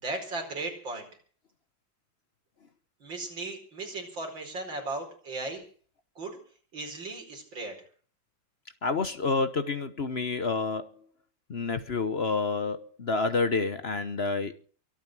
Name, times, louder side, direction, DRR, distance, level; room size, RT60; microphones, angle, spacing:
voice 1, 0.0-1.1 3.0-5.6 6.2-6.4 6.7-7.7, right 2 dB, 75° right, 5.5 m, -36 dB
voice 2, 8.8-10.9 11.5-14.5, left 4 dB, 40° left, 1.0 m, -29 dB
24.0 x 9.0 x 6.1 m
omnidirectional pair, 2.1 m